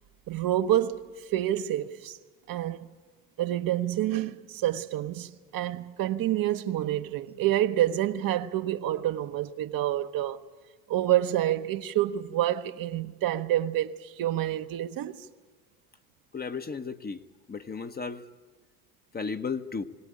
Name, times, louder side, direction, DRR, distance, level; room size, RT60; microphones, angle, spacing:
voice 1, 0.3-1.0 1.3-2.2 2.5-2.9 3.4-10.4 10.9-15.2, right 13 dB, 50° right, 1.0 m, -28 dB
voice 2, 16.3-17.2 17.5-18.3 19.1-19.8, left 5 dB, 20° left, 0.9 m, -34 dB
22.5 x 17.5 x 8.7 m
hypercardioid pair, 75°, 44 cm